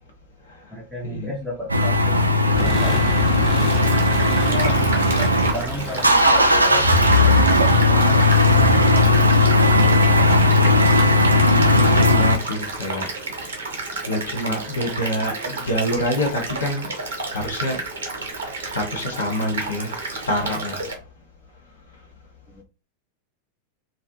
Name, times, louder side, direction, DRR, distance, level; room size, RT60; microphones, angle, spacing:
voice 1, 0.7-3.7 4.2-4.8 5.2-6.9 7.3-8.2 8.5-9.2 14.5-14.7 15.2-15.5 22.5-22.6, equal, ahead, 0.7 m, -34 dB
sound 1, 1.7-5.5 5.8-12.4, left 2 dB, 85° right, 0.3 m, -16 dB
sound 2, 2.5-8.6, left 2 dB, 35° left, 0.9 m, -30 dB
sound 3, 3.6-20.9, right 3 dB, 65° right, 0.7 m, -31 dB
voice 2, 11.6-13.1 13.7-16.9 17.3-17.8 18.2-18.3 18.6-20.9, left 1 dB, 65° left, 0.7 m, -27 dB
2.5 x 2.0 x 2.7 m
figure-of-eight pair, 90°, 0 cm